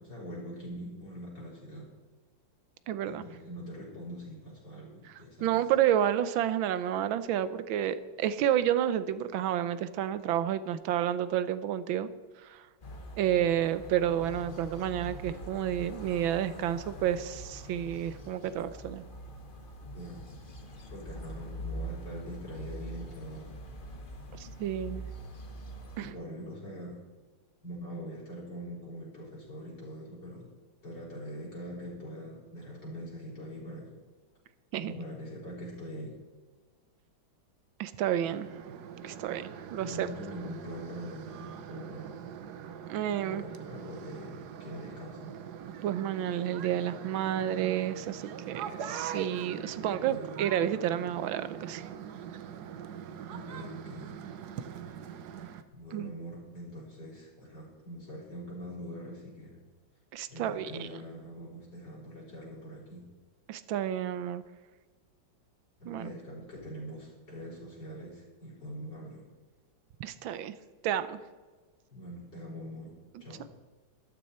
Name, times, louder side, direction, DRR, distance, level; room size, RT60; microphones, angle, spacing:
voice 1, 0.0-1.9 3.1-5.7 19.9-20.3 20.9-23.6 26.0-27.0 27.6-30.5 30.8-34.0 34.8-36.2 39.7-42.1 43.3-45.4 49.7-50.4 53.3-54.2 55.7-59.6 60.3-63.1 65.8-69.3 71.9-73.5, equal, 60° left, -5 dB, 5.8 m, -43 dB
voice 2, 2.9-3.2 5.4-12.1 12.4-12.6 13.2-19.0 24.4-25.0 26.0-26.1 34.7-34.9 37.8-38.5 39.0-39.4 39.7-40.1 42.9-43.4 45.8-51.8 55.9-56.1 60.1-60.9 63.5-64.4 65.9-66.1 70.0-70.5 70.8-71.2, right 10 dB, 80° right, 13 dB, 1.5 m, -30 dB
sound 1, 12.8-26.1, equal, 30° left, 1.2 m, -44 dB
sound 2, 38.2-55.6, right 8 dB, 65° right, 1.2 m, -42 dB
13.5 x 12.5 x 4.3 m, 1.4 s
omnidirectional pair, 2.2 m